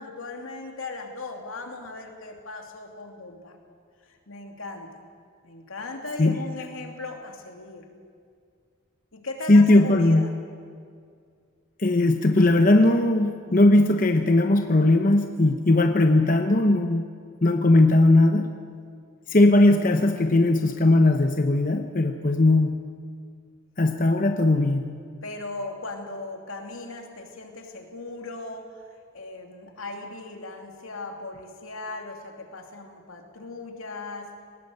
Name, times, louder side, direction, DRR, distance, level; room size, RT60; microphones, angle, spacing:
voice 1, 0.0-3.6 4.1-5.0 5.4-7.9 9.1-10.3 25.2-28.9 29.1-34.3, left 3 dB, 85° left, 3 dB, 2.8 m, -38 dB
voice 2, 9.5-10.2 11.8-17.1 17.4-18.5 19.3-22.8 23.8-24.9, left 2 dB, 40° left, 6 dB, 0.9 m, -19 dB
20.0 x 18.5 x 7.9 m, 2.2 s
head